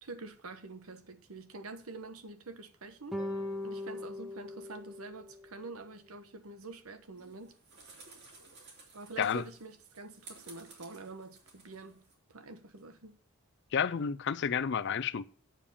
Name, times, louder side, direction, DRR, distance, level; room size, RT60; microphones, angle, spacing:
voice 1, 0.0-3.2 3.6-7.6 8.9-12.0 12.3-13.2, right 3 dB, 75° right, 1.1 m, -46 dB
sound 1, 3.1-5.7, left 1 dB, ahead, 0.7 m, -39 dB
Piano, 3.2-6.2, equal, 20° left, 1.2 m, -62 dB
sound 2, 7.2-12.1, right 3 dB, 50° right, 2.9 m, -55 dB
voice 2, 13.7-15.3, left 7 dB, 50° left, 0.4 m, -30 dB
8.8 x 7.2 x 6.8 m
head